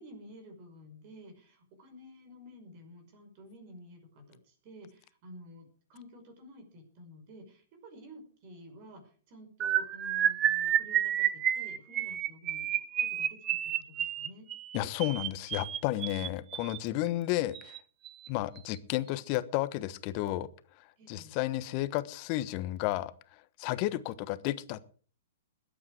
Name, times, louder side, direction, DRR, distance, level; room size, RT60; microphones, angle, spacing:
voice 1, 0.0-14.5 21.0-21.4, equal, 45° right, 6 dB, 5.3 m, -52 dB
sound 1, 9.6-16.8 17.5-17.8 18.0-18.3 18.6-18.8, right 11 dB, 25° right, 0.8 m, -30 dB
voice 2, 14.7-17.8 18.3-20.5 21.1-24.8, left 15 dB, 40° left, 14 dB, 1.2 m, -32 dB
21.0 x 8.9 x 4.9 m, 0.42 s
hypercardioid pair, 115°, 0 cm